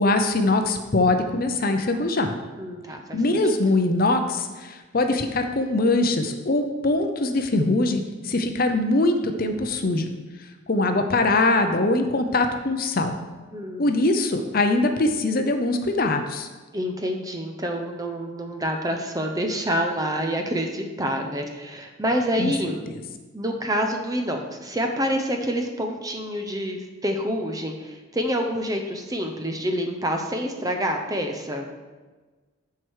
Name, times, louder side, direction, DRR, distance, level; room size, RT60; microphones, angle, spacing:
voice 1, 0.0-2.3 3.1-10.1 10.7-13.1 13.8-16.5 22.4-22.5, left 2 dB, 45° left, 6 dB, 0.6 m, -22 dB
voice 2, 2.6-3.2 13.5-13.9 16.7-22.8 23.3-31.7, equal, 15° right, 4 dB, 0.7 m, -27 dB
7.7 x 4.7 x 6.3 m, 1.3 s
head